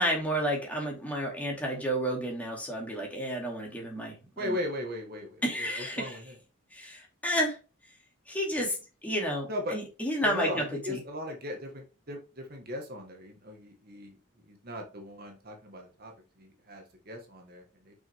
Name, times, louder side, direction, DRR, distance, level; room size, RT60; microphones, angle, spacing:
voice 1, 0.0-4.1 4.4-4.6 5.4-6.2 6.7-7.6 8.3-8.8 9.0-11.0, equal, 10° left, -2 dB, 2.6 m, -31 dB
voice 2, 4.4-6.3 9.5-9.8 10.2-14.1 14.5-16.1 16.4-17.9, left 1 dB, 50° right, 3 dB, 1.5 m, -38 dB
6.2 x 6.1 x 3.5 m, 0.32 s
head